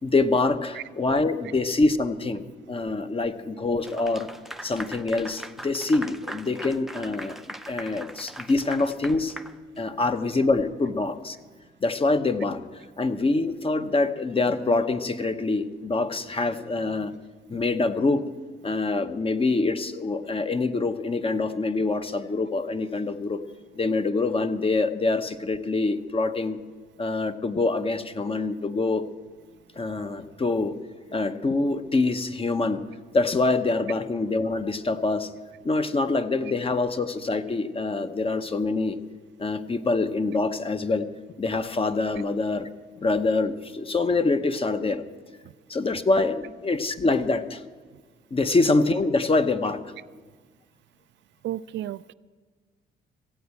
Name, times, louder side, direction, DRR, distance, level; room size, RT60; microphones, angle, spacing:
voice 1, 0.0-4.3 4.6-7.4 7.7-9.4 9.8-11.4 11.8-12.6 13.0-17.1 17.5-18.2 18.6-23.4 23.7-26.6 27.0-29.0 29.8-30.7 31.1-32.8 33.1-35.3 35.6-39.0 39.4-41.1 41.4-42.7 43.0-45.0 45.7-47.6 48.3-49.8, left 3 dB, 30° left, 10 dB, 0.9 m, -25 dB
Clapping / Applause, 3.8-10.2, right 1 dB, ahead, 0.5 m, -40 dB
voice 2, 51.4-52.1, right 13 dB, 65° right, 14 dB, 0.4 m, -32 dB
14.5 x 8.6 x 8.3 m, 1.4 s
cardioid pair, 90°, 20 cm